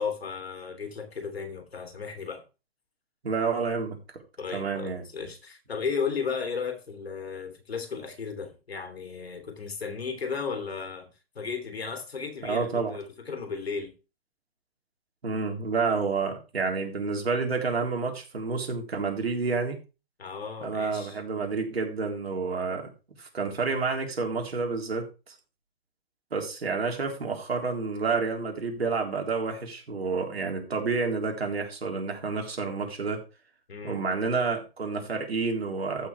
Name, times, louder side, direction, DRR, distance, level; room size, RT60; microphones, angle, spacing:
voice 1, 0.0-2.4 4.4-11.1 11.3-13.9 20.2-21.2 33.7-34.0, left 5 dB, 85° left, 3.1 m, -34 dB
voice 2, 3.2-4.2 4.5-5.0 12.4-13.0 15.2-19.8 20.6-22.9 23.2-25.3 26.3-33.2 33.8-36.1, right 4 dB, 85° right, 3.8 m, -29 dB
15.0 x 6.3 x 3.3 m
hypercardioid pair, 145°, 30 cm